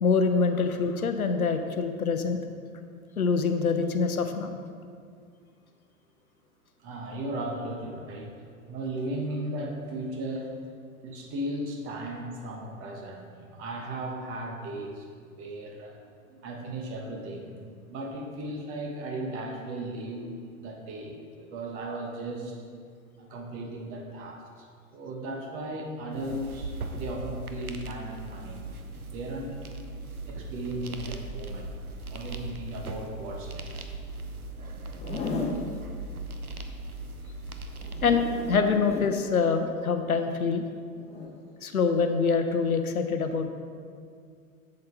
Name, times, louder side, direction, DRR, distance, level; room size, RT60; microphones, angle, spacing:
voice 1, 0.0-2.4 3.2-4.5 38.0-38.2 38.5-40.6 41.6-43.5, left 5 dB, 75° left, 7 dB, 0.9 m, -25 dB
voice 2, 6.8-8.3 8.7-10.5 11.0-15.1 15.3-16.0 16.3-20.3 20.6-22.6 23.2-24.7 24.9-28.6 28.9-29.7 30.3-31.7 32.1-33.9, right 1 dB, 30° right, 1 dB, 1.3 m, -36 dB
sound 1, 26.1-38.6, right 2 dB, 80° right, 0.8 m, -39 dB
Zipper (clothing), 34.9-35.6 37.8-39.1 41.0-41.3, left 3 dB, 15° left, 1.1 m, -34 dB
7.8 x 7.6 x 4.5 m, 2.2 s
figure-of-eight pair, 95°, 43 cm